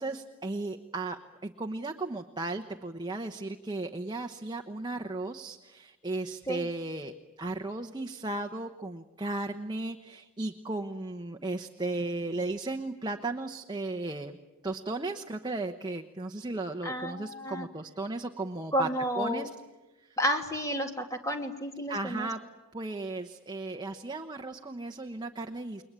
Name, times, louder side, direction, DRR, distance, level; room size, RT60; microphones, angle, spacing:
voice 1, 0.0-7.1 7.4-14.4 14.6-18.9 19.1-19.5 21.9-22.4 22.7-25.8, right 2 dB, 20° right, 4 dB, 1.0 m, -35 dB
voice 2, 16.8-17.7 18.7-19.5 20.2-22.3, equal, 15° left, 4 dB, 2.3 m, -31 dB
29.5 x 22.0 x 8.9 m, 1.1 s
head